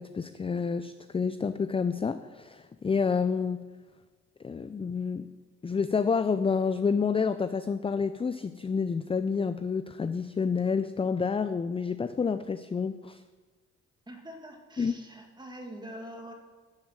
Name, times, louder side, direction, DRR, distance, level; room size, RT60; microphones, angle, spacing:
voice 1, 0.0-3.7 4.4-5.3 5.6-13.2 14.8-15.0, left 5 dB, 20° left, 11 dB, 0.4 m, -29 dB
voice 2, 14.1-16.3, equal, 15° right, 3 dB, 2.2 m, -44 dB
11.5 x 7.1 x 7.5 m, 1.4 s
cardioid pair, 90°, 30 cm